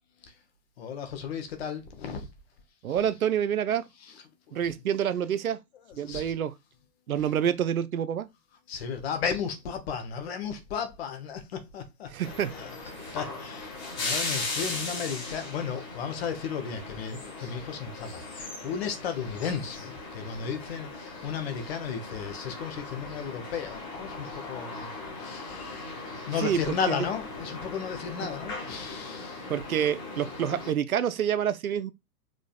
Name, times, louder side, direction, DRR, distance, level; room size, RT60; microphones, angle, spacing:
voice 1, 0.8-2.3 4.5-4.6 6.0-6.3 8.7-12.1 12.6-12.7 13.1-24.9 25.2-26.0 26.3-29.5, left 6 dB, 40° left, 1.1 m, -34 dB
voice 2, 2.8-3.9 4.5-5.6 6.0-6.5 7.1-8.3 12.1-12.5 12.9-13.2 26.3-27.1 28.2-28.3 29.5-31.9, right 9 dB, 60° right, 0.6 m, -28 dB
sound 1, 12.2-30.7, left 3 dB, 25° left, 1.6 m, -38 dB
5.0 x 3.8 x 2.4 m
figure-of-eight pair, 115°, 49 cm